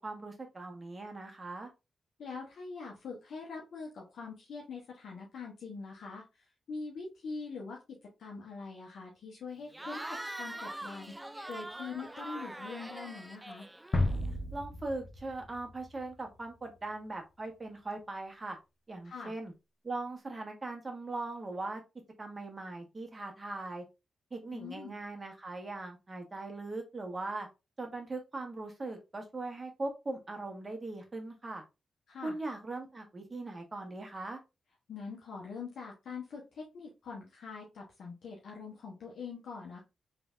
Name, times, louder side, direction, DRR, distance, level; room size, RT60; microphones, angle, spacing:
voice 1, 0.0-1.7 14.5-18.6 18.9-19.5 19.8-21.8 22.2-23.8 24.3-27.5 27.8-31.6 32.2-34.4, right 2 dB, 35° right, 3 dB, 1.3 m, -40 dB
voice 2, 2.2-7.8 8.2-11.2 11.5-13.7 19.0-19.3 24.5-25.0 32.1-32.4 34.9-39.8, left 4 dB, 75° left, -2 dB, 0.9 m, -43 dB
Cheering / Crowd, 9.7-14.3, right 1 dB, 15° right, 0.4 m, -43 dB
sound 1, 13.9-16.8, left 2 dB, 45° left, 0.9 m, -34 dB
3.3 x 3.2 x 2.4 m, 0.25 s
supercardioid pair, 45°, 0 cm